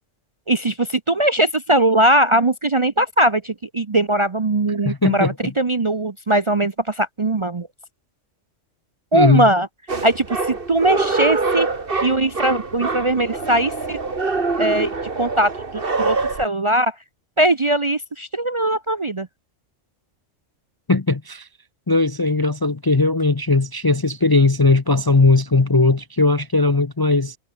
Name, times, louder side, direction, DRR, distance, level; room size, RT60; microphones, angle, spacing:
voice 1, 0.5-7.7 9.1-9.7 10.0-11.7 12.0-14.0 14.6-16.9 17.4-19.3, right 1 dB, 30° right, 0.7 m, -20 dB
voice 2, 4.8-5.5 9.1-9.5 20.9-21.5 21.9-27.4, left 3 dB, 25° left, 0.6 m, -18 dB
sound 1, 9.9-16.4, right 3 dB, 45° right, 2.3 m, -24 dB
omnidirectional pair, 1.3 m